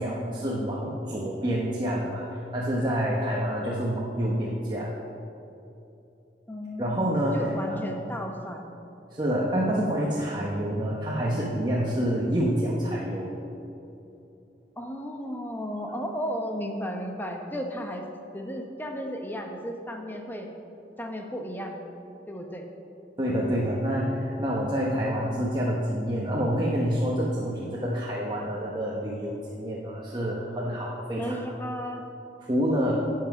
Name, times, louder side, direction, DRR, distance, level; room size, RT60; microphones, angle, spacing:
voice 1, 0.0-4.9 6.8-7.8 9.1-13.3 23.2-31.4 32.4-33.0, equal, 25° right, -5 dB, 1.1 m, -27 dB
voice 2, 6.5-7.0 7.3-8.7 14.8-18.1 18.3-20.5 21.0-21.8 22.3-22.6 31.2-32.0, equal, 10° left, 3 dB, 1.0 m, -34 dB
11.0 x 7.5 x 5.9 m, 2.8 s
head